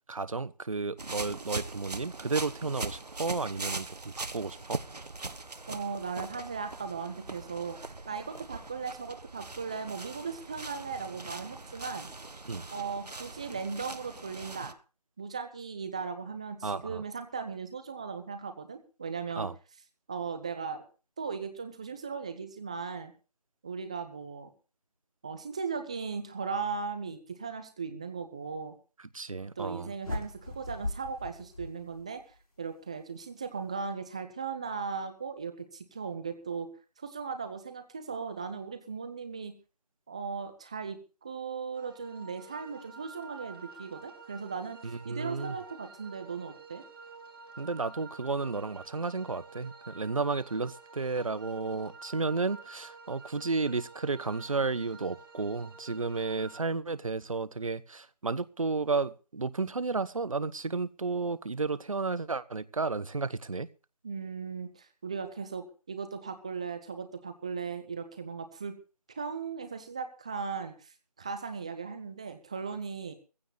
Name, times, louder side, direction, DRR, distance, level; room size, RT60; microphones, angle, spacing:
voice 1, 0.1-4.8 12.5-12.7 16.6-17.0 19.4-19.5 29.1-29.9 44.8-45.6 47.6-63.7, right 4 dB, 55° right, 1.1 m, -32 dB
sound 1, 1.0-14.7, right 3 dB, 75° right, 1.4 m, -41 dB
voice 2, 5.7-7.8 8.1-12.1 12.7-14.7 15.2-19.5 20.1-20.8 21.2-23.1 23.6-24.5 25.2-28.7 29.6-32.2 32.6-36.7 37.0-39.5 40.1-44.8 45.0-46.8 64.0-68.8 69.2-70.9 71.2-73.1, right 5 dB, 10° right, 0.7 m, -37 dB
sound 2, 30.0-32.4, left 2 dB, 60° left, 5.4 m, -38 dB
sound 3, 41.7-56.6, right 4 dB, 35° right, 2.3 m, -50 dB
17.5 x 15.5 x 3.4 m
figure-of-eight pair, 165°, 20 cm